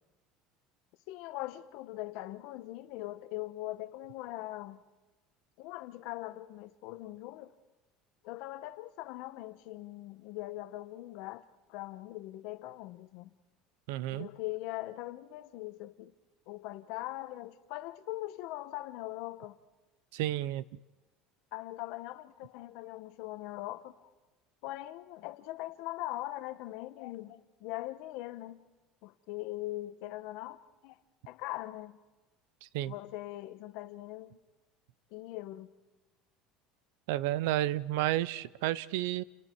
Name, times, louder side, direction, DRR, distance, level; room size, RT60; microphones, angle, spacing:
voice 1, 1.1-4.8 5.6-7.5 8.2-13.4 14.1-16.1 16.5-19.6 21.5-24.1 24.6-28.6 29.0-31.0 31.3-32.0 32.9-34.4 35.1-35.7, left 17 dB, 55° left, 1.0 m, -41 dB
voice 2, 13.9-14.3 20.1-20.6 32.7-32.9 37.1-39.2, right 15 dB, 80° right, 0.7 m, -31 dB
29.5 x 27.5 x 4.6 m
cardioid pair, 180°, 0 cm